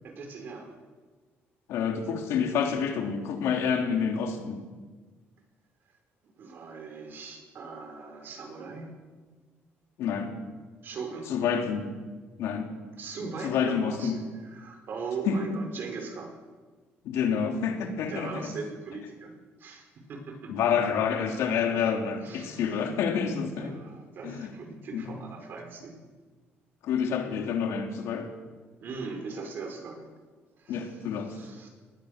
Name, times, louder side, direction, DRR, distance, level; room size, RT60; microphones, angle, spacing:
voice 1, 0.0-0.8 6.4-8.9 10.8-11.3 13.0-16.4 18.1-20.5 21.4-21.5 22.2-22.7 23.5-26.0 28.8-30.1 30.6-31.0 31.2-31.7, right 4 dB, 50° right, 4 dB, 5.1 m, -40 dB
voice 2, 1.7-4.6 10.0-10.3 11.3-11.9 12.4-12.7 13.4-14.1 15.2-15.4 17.0-18.5 20.5-23.8 24.2-24.6 24.9-25.2 26.8-28.3 30.7-31.3, left 7 dB, 80° left, 4 dB, 3.2 m, -28 dB
22.0 x 20.0 x 6.7 m, 1.4 s
cardioid pair, 140°, 5 cm